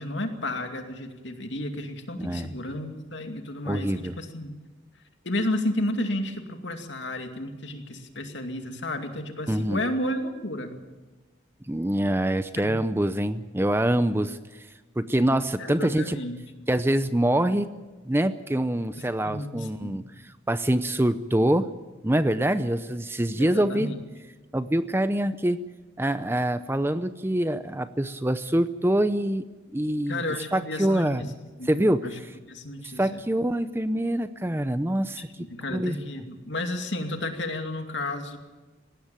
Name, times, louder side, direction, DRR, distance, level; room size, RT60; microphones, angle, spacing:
voice 1, 0.0-4.5 5.2-10.8 12.6-12.8 15.6-16.4 19.2-20.1 23.4-24.0 30.1-31.3 31.6-31.7 32.0-32.2 32.5-33.2 35.3-38.4, left 1 dB, 70° left, 5 dB, 2.4 m, -32 dB
voice 2, 2.2-2.5 3.6-4.2 9.5-9.8 11.7-14.7 15.0-16.2 16.7-17.8 18.0-21.7 22.0-23.9 24.5-25.6 26.0-29.4 29.7-30.2 30.5-31.2 31.6-32.1 32.8-35.3 35.7-36.0, right 1 dB, 10° right, 12 dB, 0.6 m, -25 dB
19.5 x 16.0 x 9.0 m, 1.3 s
head